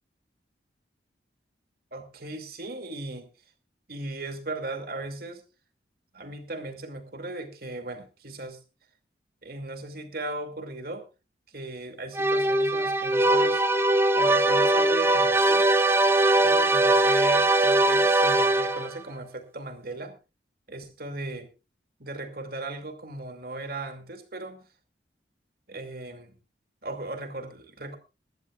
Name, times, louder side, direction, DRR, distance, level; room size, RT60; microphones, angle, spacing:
voice 1, 1.9-3.3 3.9-5.4 6.1-8.6 9.4-11.0 11.5-13.6 14.1-15.7 16.3-20.2 20.7-21.5 22.0-24.7 25.7-26.4 26.8-28.0, right 2 dB, 55° right, 7 dB, 2.5 m, -37 dB
sound 1, 12.1-19.0, right 2 dB, 15° right, 0.7 m, -21 dB
23.0 x 12.0 x 2.4 m, 0.29 s
head